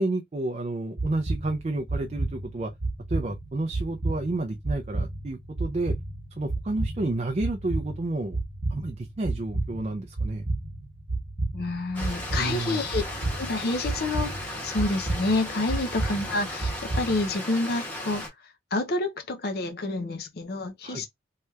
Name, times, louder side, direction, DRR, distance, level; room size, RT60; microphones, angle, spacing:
voice 1, 0.0-2.7 3.1-6.0 6.4-8.4 8.7-10.5 12.4-12.8 20.8-21.0, right 2 dB, 35° right, 0.4 m, -30 dB
sound 1, 1.0-17.3, right 2 dB, 80° right, 0.9 m, -32 dB
voice 2, 11.5-13.0 13.4-18.2 18.7-21.1, left 2 dB, 55° left, 0.5 m, -28 dB
Stream, 11.9-18.3, left 1 dB, 10° left, 1.2 m, -36 dB
3.2 x 2.8 x 2.3 m
head